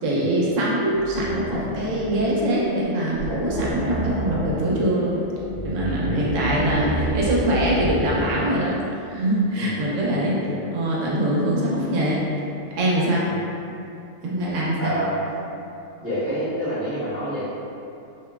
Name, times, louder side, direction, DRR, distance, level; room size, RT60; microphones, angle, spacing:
voice 1, 0.0-5.2 5.6-8.7 9.1-10.4 10.7-12.2 12.8-13.3 14.2-14.9, right 1 dB, 80° right, -5 dB, 0.9 m, -23 dB
sound 1, 1.0-2.5 2.8-2.9 3.2-4.7 5.3-8.5, right 1 dB, 50° right, 0.8 m, -29 dB
voice 2, 5.8-6.3 6.6-7.1 9.5-10.7 13.3-13.4 14.8-15.3 16.0-17.5, right 1 dB, 15° right, -15 dB, 0.6 m, -29 dB
2.9 x 2.4 x 2.2 m, 2.6 s
omnidirectional pair, 1.3 m